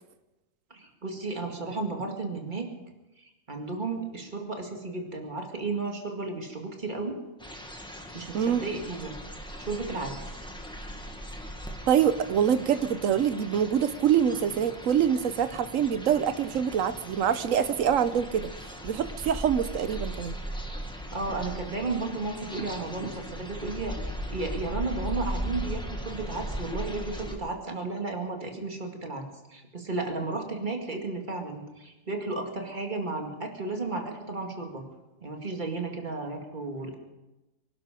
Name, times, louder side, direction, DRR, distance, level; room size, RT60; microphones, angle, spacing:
voice 1, 0.7-2.7 3.2-7.2 8.1-9.2 9.6-10.3 21.1-34.8 35.2-36.9, right 3 dB, 35° right, 3 dB, 2.3 m, -33 dB
sound 1, 7.4-27.4, equal, 5° left, 1.7 m, -38 dB
voice 2, 11.9-20.3, right 8 dB, 70° right, 13 dB, 1.1 m, -25 dB
24.0 x 11.5 x 5.1 m, 1.0 s
omnidirectional pair, 1.4 m